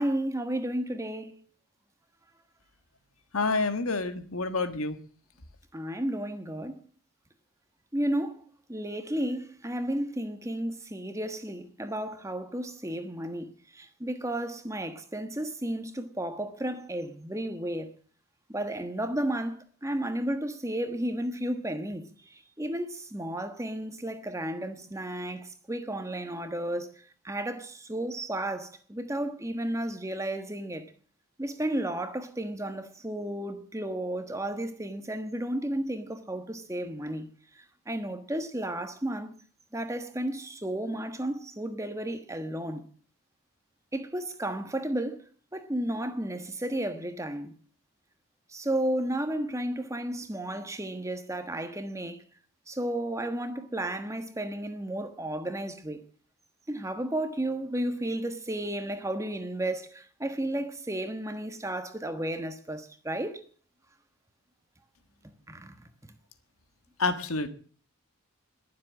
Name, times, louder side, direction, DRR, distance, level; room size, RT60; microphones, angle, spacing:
voice 1, 0.0-1.4 5.7-6.8 7.9-8.4 8.7-17.9 18.5-30.9 31.4-37.3 37.5-39.3 39.7-42.8 43.9-47.5 48.5-52.2 52.7-56.0 56.7-63.4 65.5-65.9, right 1 dB, 15° right, 1.3 m, -33 dB
voice 2, 3.3-5.0 67.0-67.5, left 3 dB, 75° left, 1.5 m, -28 dB
21.0 x 7.6 x 7.4 m
head